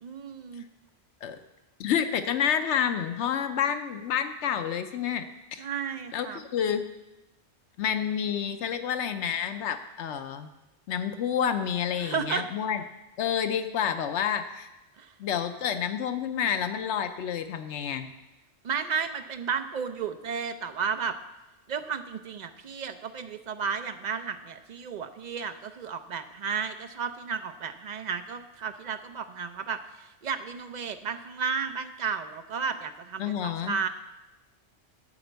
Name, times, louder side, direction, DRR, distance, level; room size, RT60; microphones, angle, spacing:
voice 1, 0.0-0.6 5.6-6.4 12.0-12.4 15.0-15.1 18.6-21.2 21.7-33.9, right 6 dB, 50° right, 9 dB, 0.6 m, -33 dB
voice 2, 1.8-5.6 6.1-6.9 7.8-10.5 10.9-12.8 13.2-14.7 15.2-18.1 33.2-33.8, left 8 dB, 80° left, 9 dB, 0.9 m, -29 dB
11.0 x 4.3 x 8.0 m, 0.99 s
omnidirectional pair, 1.2 m